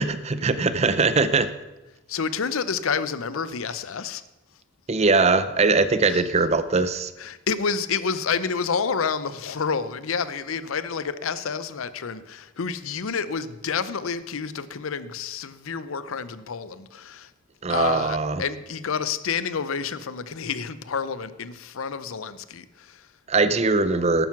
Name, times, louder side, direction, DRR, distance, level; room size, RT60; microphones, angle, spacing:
voice 1, 0.0-1.5 4.9-7.1 17.6-18.4 23.3-24.3, right 3 dB, 30° right, 0.6 m, -21 dB
voice 2, 2.1-4.2 6.1-6.3 7.2-17.3 17.7-23.1, left 6 dB, 80° left, 0.6 m, -29 dB
11.5 x 9.2 x 5.9 m
head